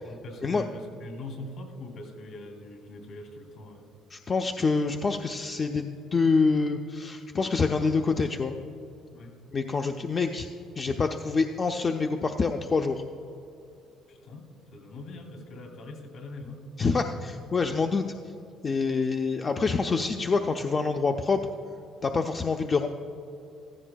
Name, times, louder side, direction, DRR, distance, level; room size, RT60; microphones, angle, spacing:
voice 1, 0.0-3.8 9.1-9.4 14.1-16.6, left 2 dB, 55° left, 4 dB, 2.4 m, -42 dB
voice 2, 4.1-8.6 9.5-10.5 10.8-13.0 16.8-18.1 18.6-21.4 22.0-22.9, left 4 dB, 25° left, 5 dB, 0.3 m, -26 dB
14.5 x 14.5 x 2.2 m, 2.7 s
cardioid pair, 160°, 0 cm